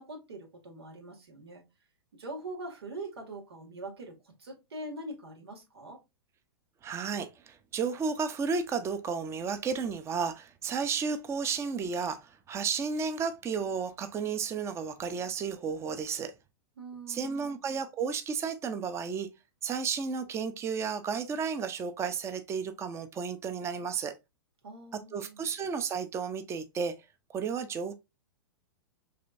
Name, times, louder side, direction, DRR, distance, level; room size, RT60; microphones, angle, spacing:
voice 1, 0.0-1.6 2.1-4.1 4.4-6.0 16.8-17.5 24.6-25.5, right 2 dB, 85° right, 1.9 m, -43 dB
voice 2, 6.8-16.3 17.1-19.3 19.6-24.1 24.9-27.0 27.3-27.9, right 5 dB, 20° right, 0.6 m, -33 dB
5.0 x 3.3 x 2.5 m
hypercardioid pair, 120°, 13 cm